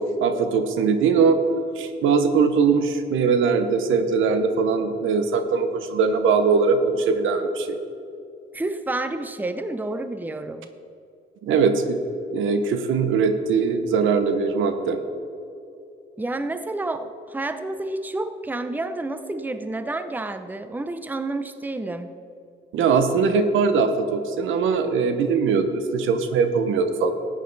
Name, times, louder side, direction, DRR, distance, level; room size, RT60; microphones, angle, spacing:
voice 1, 0.0-1.4 1.8-7.8 11.4-12.0 12.3-15.0 22.7-27.1, right 5 dB, 80° right, 8 dB, 1.0 m, -21 dB
voice 2, 8.5-10.7 16.2-22.1, right 2 dB, 10° right, 10 dB, 0.6 m, -29 dB
14.0 x 9.1 x 4.0 m, 2.7 s
cardioid pair, 90°, 20 cm